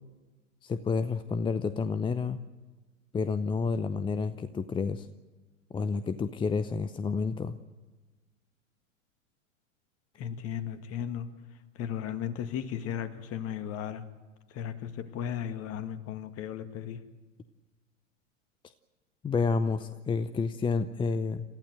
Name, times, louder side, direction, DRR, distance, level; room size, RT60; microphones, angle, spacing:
voice 1, 0.6-2.4 3.1-5.1 5.7-7.5 19.2-21.4, left 4 dB, 10° left, 12 dB, 0.6 m, -29 dB
voice 2, 10.2-11.3 11.8-14.0 14.5-17.0, left 9 dB, 35° left, 9 dB, 2.0 m, -35 dB
27.5 x 15.0 x 7.9 m, 1.3 s
figure-of-eight pair, 90°, 40 cm